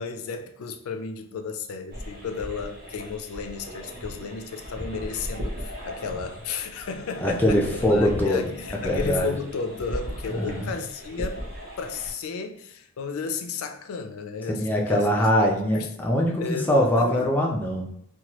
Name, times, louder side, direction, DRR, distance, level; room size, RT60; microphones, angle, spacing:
voice 1, 0.0-11.4 11.8-15.9 16.4-17.4, left 5 dB, 75° left, 0.4 m, -33 dB
sound 1, 1.9-12.1, equal, 45° right, 0.7 m, -37 dB
voice 2, 7.2-8.4 8.8-9.3 10.4-10.7 14.5-17.9, equal, 10° left, 0.4 m, -23 dB
2.9 x 2.2 x 2.9 m
head